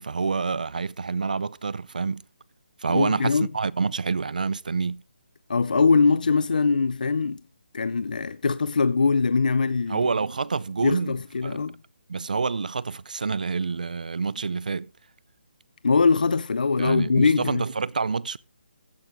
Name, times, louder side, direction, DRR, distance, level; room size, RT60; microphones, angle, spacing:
voice 1, 0.0-2.2 2.8-5.0 9.9-11.1 11.4-11.6 12.1-14.9 16.8-18.4, right 4 dB, 50° right, 0.5 m, -27 dB
voice 2, 2.9-3.5 5.5-7.4 7.7-10.0 10.8-11.8 15.8-17.6, left 4 dB, 50° left, 0.5 m, -22 dB
14.5 x 9.2 x 3.7 m
hypercardioid pair, 180°, 6 cm